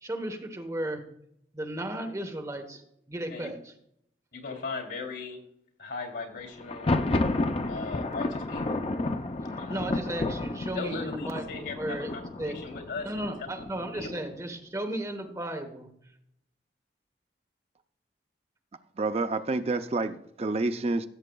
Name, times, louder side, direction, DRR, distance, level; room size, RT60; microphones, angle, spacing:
voice 1, 0.0-1.0 1.5-2.8 3.1-3.7 9.7-11.4 11.8-12.5 13.0-15.9, right 1 dB, 20° right, 4 dB, 1.0 m, -35 dB
voice 2, 4.3-5.4 5.8-6.9 7.7-8.8 9.6-9.8 10.7-13.3 13.9-14.1, left 4 dB, 90° left, 4 dB, 2.8 m, -38 dB
Thunder, 6.6-14.4, left 2 dB, 35° left, 0.5 m, -31 dB
voice 3, 19.0-21.1, right 3 dB, 35° right, 9 dB, 0.4 m, -28 dB
16.0 x 7.4 x 2.3 m, 0.74 s
head